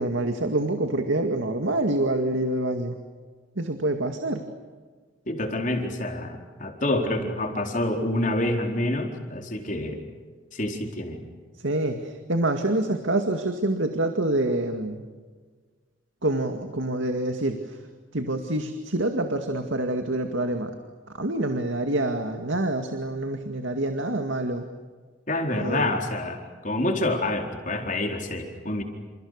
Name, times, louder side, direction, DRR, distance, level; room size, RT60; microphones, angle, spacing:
voice 1, 0.0-3.0 3.6-4.4 11.6-15.0 16.2-17.8 18.1-20.7 21.1-24.7 25.6-25.9, right 1 dB, 80° right, 5 dB, 2.2 m, -26 dB
voice 2, 5.3-10.0 10.5-11.2 25.3-28.8, left 1 dB, 40° left, 2 dB, 4.3 m, -27 dB
29.5 x 29.0 x 6.7 m, 1.5 s
head